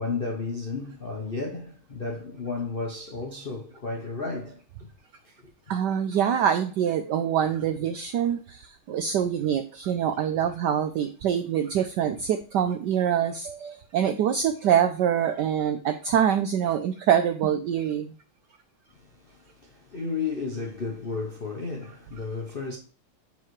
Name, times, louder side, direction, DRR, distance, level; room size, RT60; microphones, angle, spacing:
voice 1, 0.0-4.9 5.2-5.5 18.9-22.8, left 4 dB, 60° left, 0.6 m, -33 dB
voice 2, 5.7-18.1, right 9 dB, 85° right, 0.9 m, -25 dB
6.9 x 5.5 x 3.1 m
omnidirectional pair, 2.4 m